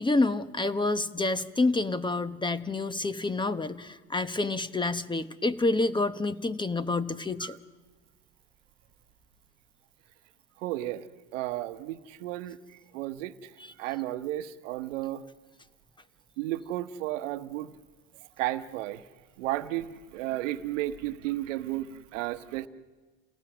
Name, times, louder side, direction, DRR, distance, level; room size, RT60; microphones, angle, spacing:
voice 1, 0.0-7.6, left 2 dB, 10° left, 13 dB, 1.0 m, -28 dB
voice 2, 10.6-12.6 12.9-13.5 13.8-15.2 16.4-17.7 18.4-19.0 19.4-22.7, right 15 dB, 85° right, 11 dB, 1.1 m, -33 dB
28.5 x 18.5 x 6.2 m, 1.3 s
supercardioid pair, 85°, 37 cm